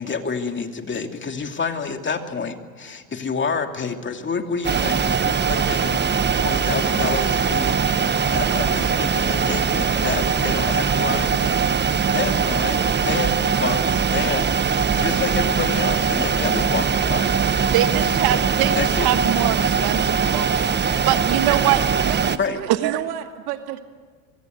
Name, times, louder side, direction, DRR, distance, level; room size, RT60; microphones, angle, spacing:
voice 1, 0.0-11.5 12.1-17.7 18.3-18.4 18.7-19.1 22.4-22.6, left 5 dB, 25° left, 5 dB, 2.7 m, -29 dB
sound 1, 4.6-22.4, right 6 dB, 25° right, 1.1 m, -21 dB
sound 2, 5.7-11.3, left 5 dB, 50° left, 5.9 m, -41 dB
voice 2, 17.7-20.7 21.0-21.8 22.2-22.3 22.7-23.0, right 13 dB, 55° right, 10 dB, 1.6 m, -23 dB
voice 3, 22.0-23.8, right 12 dB, 85° right, 6 dB, 2.5 m, -31 dB
25.0 x 23.5 x 8.1 m, 1.5 s
supercardioid pair, 90°, 44 cm